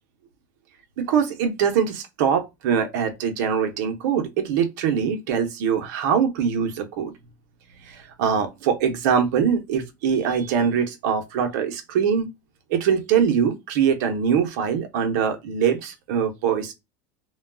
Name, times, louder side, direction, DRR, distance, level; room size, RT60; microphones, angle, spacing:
voice 1, 1.0-7.1 7.8-12.3 12.7-16.7, right 7 dB, 70° right, 0.8 m, -23 dB
2.3 x 2.3 x 3.4 m
supercardioid pair, 150°, 10 cm